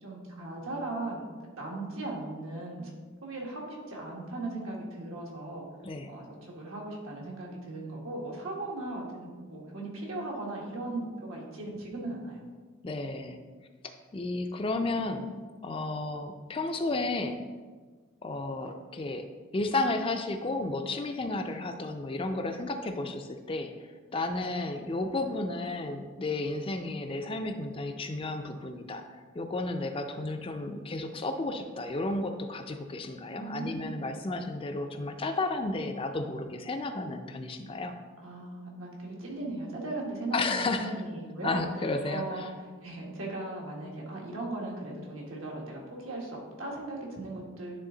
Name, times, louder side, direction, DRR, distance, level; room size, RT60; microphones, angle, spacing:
voice 1, 0.0-1.3 1.6-2.9 3.2-5.6 6.1-12.4 24.4-24.5 33.4-34.0 38.2-41.6 42.0-42.5 42.8-47.8, right 2 dB, 85° right, -2 dB, 1.7 m, -38 dB
voice 2, 12.8-13.4 14.1-15.3 15.6-17.4 18.2-19.2 19.5-23.9 24.1-37.9 40.3-40.9 41.4-42.5, left 2 dB, 25° left, 6 dB, 0.4 m, -32 dB
9.9 x 3.5 x 3.8 m, 1.5 s
head